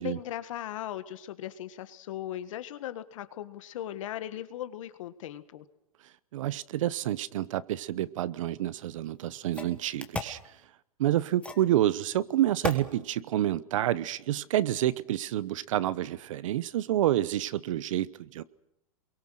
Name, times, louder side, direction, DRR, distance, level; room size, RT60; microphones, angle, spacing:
voice 1, 0.0-5.6, left 12 dB, 65° left, 12 dB, 1.7 m, -38 dB
voice 2, 6.3-10.4 11.0-18.4, right 13 dB, 65° right, 18 dB, 1.0 m, -28 dB
sound 1, 8.8-8.9 9.5-10.4 11.4-11.7 12.6-12.9, left 3 dB, 5° left, 1.5 m, -34 dB
28.5 x 23.0 x 6.5 m, 0.83 s
hypercardioid pair, 145°, 18 cm